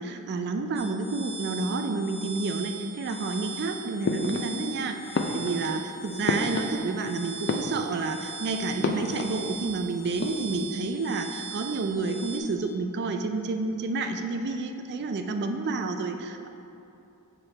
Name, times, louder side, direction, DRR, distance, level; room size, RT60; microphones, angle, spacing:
voice 1, 0.0-16.5, right 3 dB, 50° right, 6 dB, 0.4 m, -30 dB
sound 1, 0.7-12.4, right 5 dB, 30° right, 0.9 m, -40 dB
sound 2, 4.0-4.8 5.1-7.1 7.4-8.2 8.8-9.8 10.1-10.6, left 3 dB, 50° left, 0.4 m, -31 dB
7.0 x 4.2 x 3.3 m, 2.7 s
head